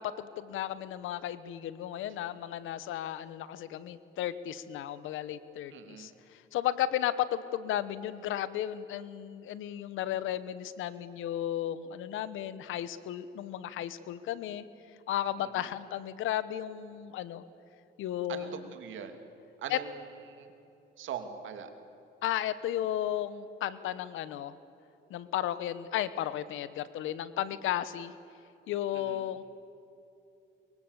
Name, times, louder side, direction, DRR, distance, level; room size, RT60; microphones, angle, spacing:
voice 1, 0.0-14.7 15.1-17.4 18.0-18.6 19.7-19.8 22.2-24.5 25.1-28.1 28.7-29.4, left 11 dB, 85° left, 15 dB, 1.2 m, -34 dB
voice 2, 5.7-6.1 15.4-15.7 18.3-19.2 19.6-20.5 21.0-21.7 28.9-29.2, right 8 dB, 75° right, 7 dB, 2.7 m, -42 dB
23.5 x 23.0 x 8.3 m, 2.9 s
cardioid pair, 90°, 20 cm